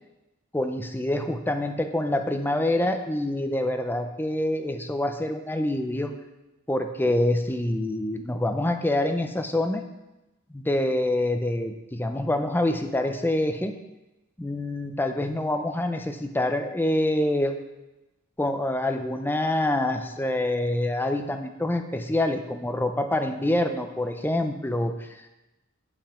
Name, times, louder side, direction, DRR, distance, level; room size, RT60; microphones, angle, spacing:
voice 1, 0.5-6.1 6.7-9.8 10.5-13.7 14.4-17.5 18.4-25.3, left 1 dB, 10° left, 6 dB, 0.6 m, -26 dB
9.6 x 5.5 x 4.4 m, 0.99 s
head